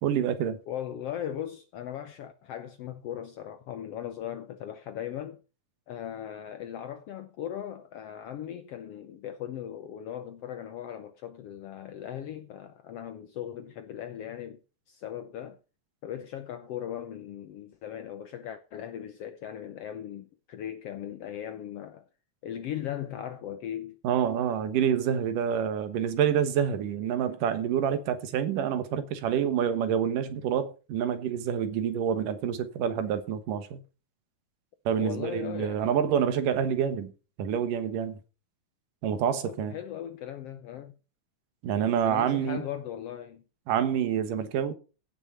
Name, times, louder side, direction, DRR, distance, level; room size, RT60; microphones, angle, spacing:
voice 1, 0.0-0.6 24.0-33.8 34.9-37.1 37.4-38.2 39.0-39.8 41.6-42.6 43.7-44.7, right 8 dB, 85° right, 2.9 m, -27 dB
voice 2, 0.7-5.4 5.9-14.6 14.9-15.6 16.0-22.0 22.4-24.0 34.9-36.0 39.5-41.0 42.0-43.4, left 10 dB, 70° left, 1.5 m, -38 dB
16.0 x 6.2 x 5.6 m
omnidirectional pair, 3.7 m